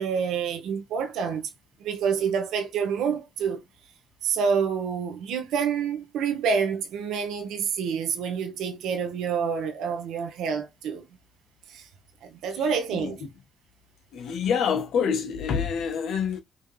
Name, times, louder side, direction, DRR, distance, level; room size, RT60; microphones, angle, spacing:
voice 1, 0.0-1.5 1.8-3.6 4.2-11.0 11.7-11.9 12.2-13.2, right 6 dB, 85° right, 0.9 m, -27 dB
voice 2, 14.1-16.4, left 7 dB, 75° left, 1.1 m, -26 dB
5.4 x 2.8 x 3.2 m
cardioid pair, 90°, 0 cm